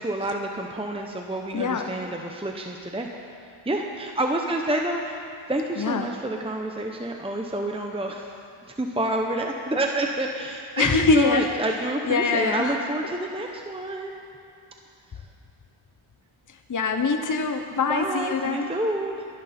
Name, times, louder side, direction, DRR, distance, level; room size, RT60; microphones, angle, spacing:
voice 1, 0.0-3.1 3.7-5.2 5.5-8.3 8.8-14.2 17.9-19.3, right 1 dB, 10° right, 2 dB, 0.8 m, -28 dB
voice 2, 1.5-2.0 5.8-6.1 10.8-11.8 12.0-12.8 16.5-18.7, left 4 dB, 40° left, 5 dB, 0.8 m, -24 dB
22.0 x 10.5 x 4.3 m, 2.5 s
wide cardioid pair, 85°, 50 cm